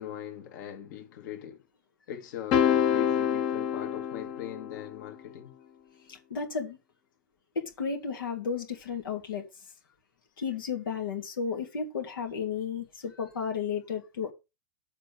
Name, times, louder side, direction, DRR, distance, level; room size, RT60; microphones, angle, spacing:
voice 1, 0.0-1.6 2.1-5.5, left 10 dB, 65° left, 2.2 m, -40 dB
sound 1, 2.5-4.9, left 9 dB, 40° left, 1.1 m, -26 dB
voice 2, 6.1-6.8 7.5-9.5 10.4-14.3, left 6 dB, 85° left, 2.5 m, -33 dB
7.5 x 4.5 x 7.0 m
hypercardioid pair, 115°, 11 cm